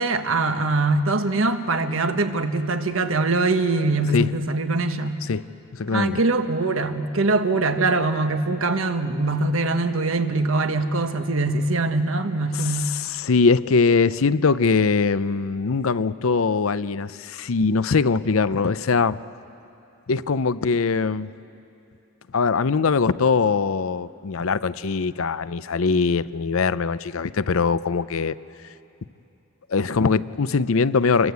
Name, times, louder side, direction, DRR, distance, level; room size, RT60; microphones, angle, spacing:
voice 1, 0.0-5.2 5.9-12.9, right 2 dB, 75° right, 7 dB, 1.3 m, -23 dB
voice 2, 5.7-6.2 12.5-19.2 20.1-21.3 22.3-28.3 29.7-31.3, left 4 dB, 80° left, 15 dB, 0.6 m, -22 dB
27.0 x 24.0 x 8.2 m, 2.8 s
head